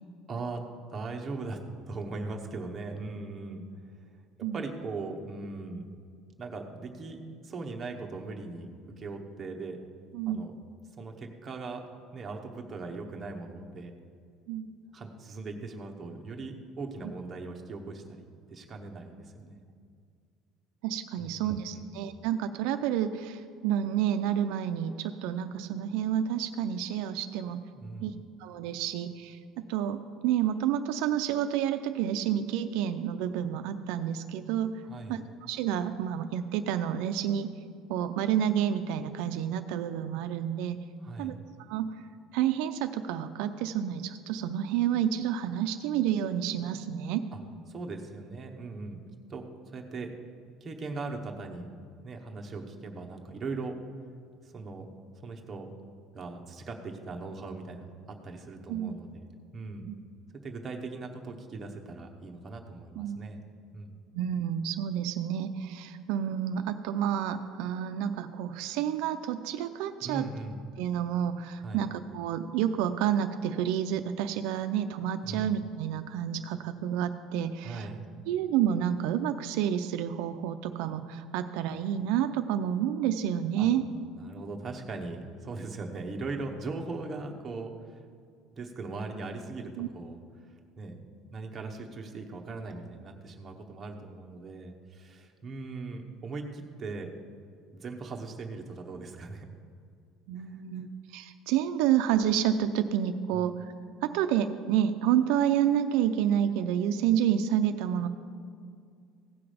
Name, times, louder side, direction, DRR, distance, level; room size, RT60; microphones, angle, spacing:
voice 1, 0.3-0.6 0.9-1.6 1.9-3.6 4.5-5.8 6.4-8.7 9.0-9.8 10.3-10.5 11.0-11.8 12.1-13.9 14.9-19.6 21.2-22.0 27.7-28.2 34.8-35.2 41.0-41.3 47.3-47.4 47.7-49.0 49.3-50.1 50.6-51.7 52.0-53.8 54.4-54.9 55.2-55.7 56.1-59.3 59.5-59.9 60.4-63.4 63.7-64.0 70.0-70.7 71.6-71.9 75.2-75.6 77.6-78.0 83.6-83.7 84.2-88.0 88.5-91.0 91.3-97.1 97.7-99.5 100.4-100.8 103.3-103.5, right 3 dB, 20° right, 2 dB, 0.9 m, -39 dB
voice 2, 20.8-27.6 28.0-28.1 28.4-29.4 29.7-34.8 35.1-37.5 37.9-40.8 41.2-41.3 41.7-41.9 42.3-47.2 58.7-58.9 59.9-60.0 63.0-63.2 64.1-70.3 70.8-77.9 78.3-83.8 89.8-89.9 100.3-103.7 104.0-108.1, right 10 dB, 70° right, 8 dB, 0.4 m, -29 dB
16.0 x 5.9 x 5.0 m, 2.2 s
cardioid pair, 175°, 0 cm